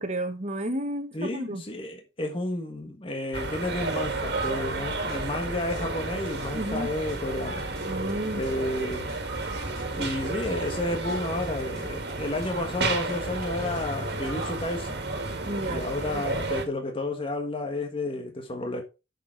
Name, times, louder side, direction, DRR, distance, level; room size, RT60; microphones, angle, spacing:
voice 1, 0.0-1.6 6.5-6.9 7.8-8.5 15.5-15.9 16.1-16.5, right 1 dB, 40° right, 1.2 m, -32 dB
voice 2, 1.1-7.6 8.3-9.1 10.0-15.0 15.7-18.8, left 2 dB, 30° left, 1.4 m, -31 dB
sound 1, 3.3-16.6, right 2 dB, 65° right, 2.1 m, -32 dB
sound 2, 4.1-14.7, equal, 5° left, 4.7 m, -54 dB
7.2 x 6.8 x 4.6 m
head